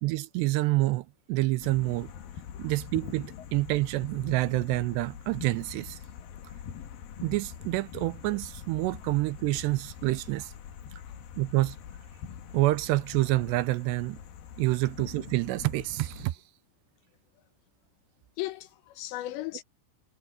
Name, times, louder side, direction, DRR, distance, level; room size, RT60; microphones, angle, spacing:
voice 1, 0.0-2.1 2.6-6.0 7.2-10.5 11.4-11.8 12.5-14.2 14.6-16.4, right 19 dB, 80° right, 2.7 m, -28 dB
sound 1, 1.6-16.3, left 8 dB, 65° left, 2.9 m, -44 dB
voice 2, 18.4-19.6, left 16 dB, 80° left, 3.3 m, -36 dB
omnidirectional pair, 5.1 m